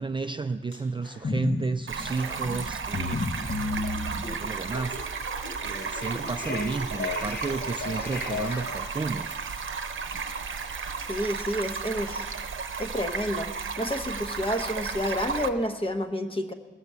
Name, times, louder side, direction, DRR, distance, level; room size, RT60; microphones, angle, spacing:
voice 1, 0.0-3.2 4.2-5.0 5.3-9.3, right 4 dB, 25° right, 7 dB, 0.3 m, -32 dB
sound 1, 0.6-1.4 1.8-1.9 2.1-2.5 3.3-16.0, left 1 dB, 75° left, 5.3 m, -53 dB
sound 2, 1.2-1.7 2.0-8.9, left 3 dB, 55° left, 0.8 m, -34 dB
Stream, 1.9-15.5, right 5 dB, 80° right, 0.7 m, -34 dB
voice 2, 11.1-12.2 12.8-13.5 13.8-16.5, equal, 25° left, 6 dB, 0.9 m, -29 dB
18.0 x 6.7 x 7.3 m, 1.4 s
wide cardioid pair, 125°, 20 cm